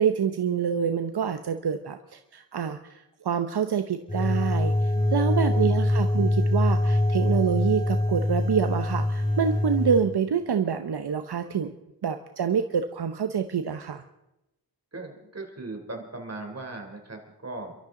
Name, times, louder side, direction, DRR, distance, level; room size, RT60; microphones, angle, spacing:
voice 1, 0.0-11.7 12.0-14.0, right 7 dB, 70° right, 8 dB, 0.9 m, -27 dB
sound 1, 4.1-10.0, left 1 dB, 20° left, 3.1 m, -24 dB
voice 2, 4.9-5.7 14.9-17.8, right 2 dB, 40° right, 3 dB, 3.3 m, -39 dB
29.0 x 13.0 x 3.8 m, 0.92 s
wide cardioid pair, 90°, 40 cm